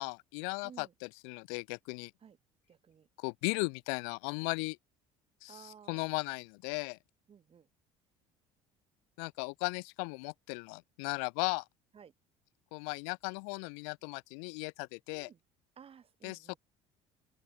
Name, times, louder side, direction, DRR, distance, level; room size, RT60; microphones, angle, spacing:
voice 1, 0.0-2.1 3.2-4.8 5.4-7.0 9.2-11.6 12.7-15.3 16.2-16.5, left 40 dB or more, 85° left, 0.6 m, -37 dB
voice 2, 0.6-0.9 2.2-2.4 2.7-3.1 5.5-6.1 7.3-7.7 11.9-12.1 15.1-15.4 15.8-16.6, right 7 dB, 40° right, 6.7 m, -55 dB
open air
supercardioid pair, 90°, 15 cm